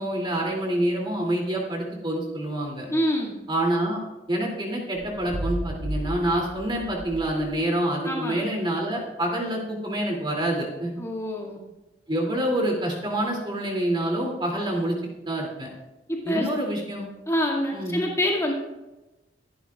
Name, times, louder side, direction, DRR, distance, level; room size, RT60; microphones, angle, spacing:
voice 1, 0.0-2.9 3.5-4.0 4.3-10.9 12.1-15.0 15.3-15.7 16.2-17.1 17.7-18.0, right 1 dB, 30° right, -1 dB, 2.7 m, -27 dB
voice 2, 2.9-3.4 8.1-8.7 11.0-11.6 16.1-16.5 17.3-18.5, equal, 15° left, -2 dB, 2.1 m, -26 dB
sound 1, 4.9-7.7, right 1 dB, 60° right, 0.9 m, -34 dB
25.0 x 11.5 x 2.4 m, 1.1 s
head